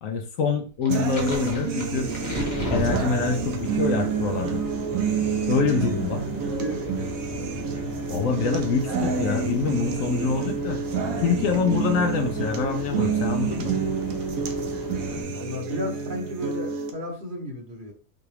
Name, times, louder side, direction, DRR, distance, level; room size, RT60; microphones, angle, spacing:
voice 1, 0.0-2.1 2.7-4.6 5.5-6.2 8.1-10.8 11.2-13.7 15.3-15.4, left 5 dB, 70° left, 5 dB, 0.9 m, -25 dB
sound 1, 0.9-3.7, equal, 25° left, 1.3 m, -31 dB
sound 2, 0.9-16.9, right 6 dB, 70° right, 1.0 m, -29 dB
sound 3, 2.0-15.2, equal, 15° right, 1.1 m, -36 dB
voice 2, 5.5-7.0 15.3-17.9, equal, 40° right, 1 dB, 1.0 m, -34 dB
5.7 x 2.4 x 3.3 m, 0.39 s
omnidirectional pair, 1.6 m